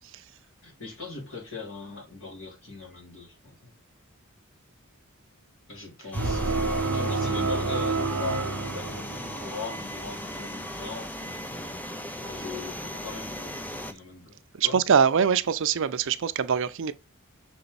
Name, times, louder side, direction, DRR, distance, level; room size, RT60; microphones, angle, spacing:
voice 1, 0.6-3.7 5.7-6.6 6.8-11.7 12.2-14.4 14.6-14.8, left 3 dB, 60° left, 3.9 m, -40 dB
sound 1, 6.1-13.9, left 1 dB, 10° left, 0.7 m, -37 dB
sound 2, 6.1-9.5, right 3 dB, 80° right, 0.9 m, -28 dB
voice 2, 14.5-16.9, right 7 dB, 60° right, 0.5 m, -23 dB
6.8 x 4.5 x 4.0 m
head